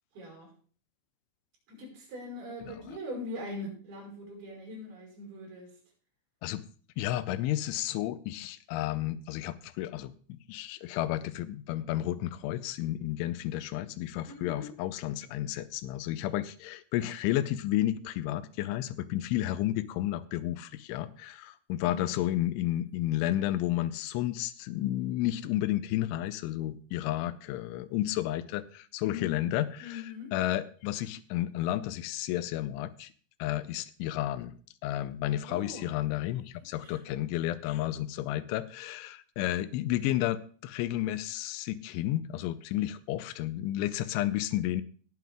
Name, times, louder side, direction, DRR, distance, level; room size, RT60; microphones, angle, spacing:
voice 1, 0.1-0.5 1.7-5.8 14.3-14.7 21.8-22.0 29.0-29.5 29.8-30.3 35.5-35.9 36.8-37.0, left 2 dB, 50° right, 0 dB, 7.1 m, -41 dB
voice 2, 7.0-30.0 30.3-33.1 33.4-34.5 34.8-44.8, left 14 dB, 80° left, 15 dB, 3.0 m, -32 dB
18.5 x 7.8 x 3.5 m, 0.42 s
omnidirectional pair, 5.8 m